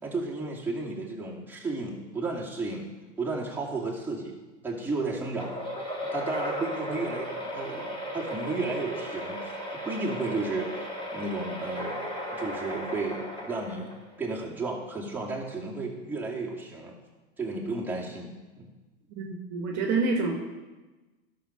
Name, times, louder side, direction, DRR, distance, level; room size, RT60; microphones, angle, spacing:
voice 1, 0.0-2.9 3.2-4.4 4.6-5.5 6.1-9.4 9.7-10.8 11.1-12.0 12.3-16.9 17.4-18.7, right 3 dB, 5° right, -5 dB, 2.3 m, -33 dB
sound 1, 5.4-14.2, equal, 15° left, 2.2 m, -35 dB
voice 2, 19.1-20.4, right 3 dB, 45° right, 2 dB, 1.5 m, -27 dB
12.5 x 6.4 x 5.6 m, 1.2 s
hypercardioid pair, 120°, 37 cm